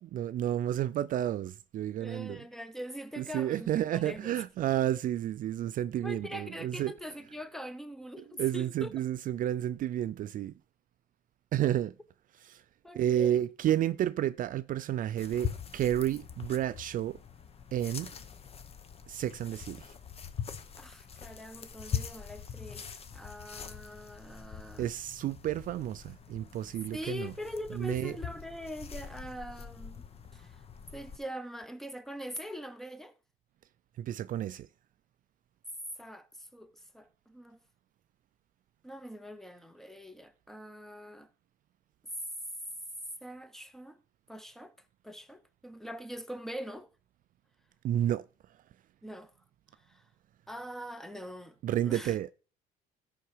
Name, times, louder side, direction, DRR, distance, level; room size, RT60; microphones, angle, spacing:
voice 1, 0.0-2.4 3.2-7.1 8.2-10.5 11.5-11.9 12.3-12.6 12.9-17.2 17.7-18.1 19.1-19.9 24.8-27.3 27.7-28.2 34.0-34.7 47.8-48.3 51.6-52.3, right 11 dB, 55° right, 0.4 m, -31 dB
voice 2, 2.0-4.4 6.0-8.9 12.8-13.4 20.8-24.9 26.9-30.0 30.3-30.6 30.9-33.1 36.0-37.6 38.8-41.3 43.2-44.0 44.3-44.7 45.0-46.9 49.0-49.3 49.7-50.0 50.5-51.6 51.8-52.2, equal, ahead, 0.9 m, -43 dB
sound 1, 15.2-31.2, left 8 dB, 35° left, 1.0 m, -43 dB
13.0 x 5.7 x 4.9 m
cardioid pair, 110°, 17 cm